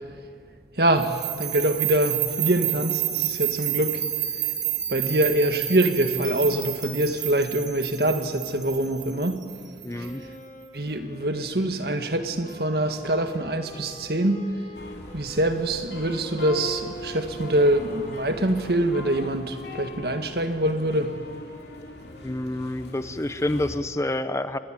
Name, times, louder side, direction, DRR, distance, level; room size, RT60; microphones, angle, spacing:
voice 1, 0.8-4.0 4.9-9.4 10.0-10.1 10.7-14.4 15.1-21.2, right 1 dB, 65° right, 1.8 m, -24 dB
sound 1, 1.0-10.1, right 12 dB, 45° right, 2.9 m, -30 dB
Wind instrument woodwind instrument, 9.8-23.3, left 2 dB, 45° left, 5.1 m, -47 dB
voice 2, 9.8-10.2 22.2-24.6, left 1 dB, 15° left, 0.7 m, -28 dB
sound 2, 14.7-23.8, left 1 dB, 75° left, 2.5 m, -40 dB
25.0 x 19.5 x 9.4 m
head